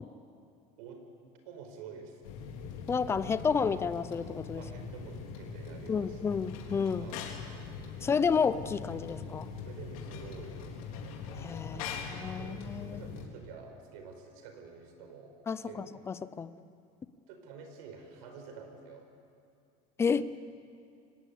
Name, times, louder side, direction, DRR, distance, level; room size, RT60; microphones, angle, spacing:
voice 1, 1.4-2.2 4.6-6.4 7.0-7.2 9.6-11.0 11.7-12.1 12.4-15.4 15.7-15.9 16.3-16.4 17.3-19.1, right 5 dB, 85° right, 5 dB, 4.8 m, -49 dB
sound 1, 2.2-13.3, left 5 dB, 85° left, 3.5 m, -42 dB
voice 2, 2.9-4.6 5.9-7.1 8.0-9.5 11.4-13.0 15.5-16.5 20.0-20.2, left 6 dB, 15° left, 15 dB, 0.6 m, -31 dB
24.5 x 18.5 x 8.6 m, 2.6 s
cardioid pair, 165°, 18 cm